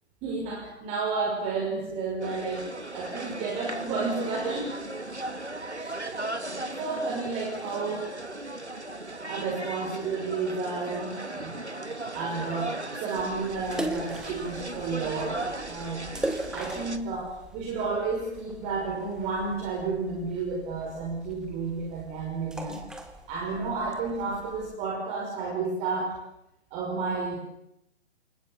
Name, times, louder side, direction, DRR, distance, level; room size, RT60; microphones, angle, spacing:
voice 1, 0.2-2.7 2.9-4.8 5.8-6.1 6.5-8.1 9.3-11.5 12.1-15.4 15.7-16.0 16.5-22.8 23.3-26.2 26.7-27.4, right 4 dB, 20° right, 0 dB, 5.6 m, -31 dB
sound 1, 2.2-17.0, right 2 dB, 85° right, 2.6 m, -37 dB
sound 2, 13.2-24.7, right 2 dB, ahead, 1.8 m, -40 dB
28.5 x 27.5 x 7.4 m, 0.85 s
figure-of-eight pair, 135°, 33 cm